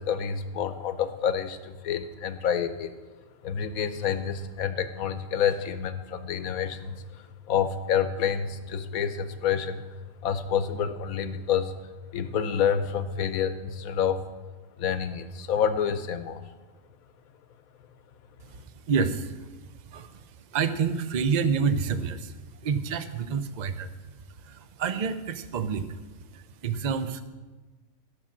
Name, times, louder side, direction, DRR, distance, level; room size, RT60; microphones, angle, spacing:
voice 1, 0.0-2.9 3.4-9.8 10.2-11.7 12.1-14.2 14.8-16.4, left 8 dB, 75° left, 11 dB, 1.2 m, -28 dB
voice 2, 18.4-19.5 19.9-20.2 20.5-22.3 22.6-23.9 24.4-26.0 26.3-27.2, right 6 dB, 50° right, 11 dB, 0.5 m, -28 dB
11.5 x 6.3 x 7.3 m, 1.3 s
omnidirectional pair, 1.5 m